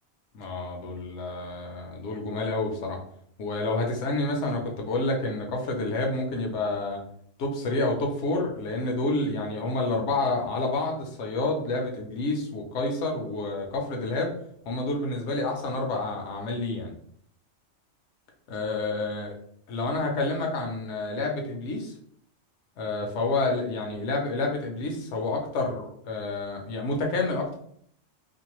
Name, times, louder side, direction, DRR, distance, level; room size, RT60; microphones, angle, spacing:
voice 1, 0.3-3.0 3.4-7.0 7.4-14.3 14.7-16.9 18.5-19.3 19.7-21.9 22.8-27.6, left 2 dB, 65° left, 1 dB, 0.9 m, -29 dB
2.6 x 2.2 x 2.9 m, 0.65 s
omnidirectional pair, 1.4 m